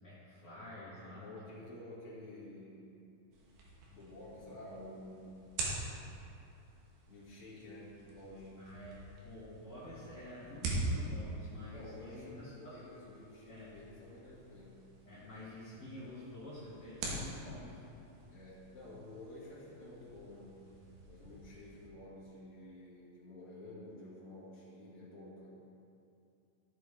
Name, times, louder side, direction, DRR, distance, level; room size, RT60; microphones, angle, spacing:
voice 1, 0.0-1.3 8.6-12.8 13.5-13.7 15.1-17.8, left 1 dB, 45° left, -11 dB, 1.5 m, -49 dB
voice 2, 1.1-2.9 3.9-5.4 7.1-8.7 11.7-14.9 18.3-20.7 21.1-25.5, left 1 dB, 25° left, -8 dB, 1.9 m, -51 dB
sound 1, 3.3-21.9, right 2 dB, 80° right, 3.3 m, -45 dB
13.5 x 7.6 x 3.5 m, 2.7 s
omnidirectional pair, 4.5 m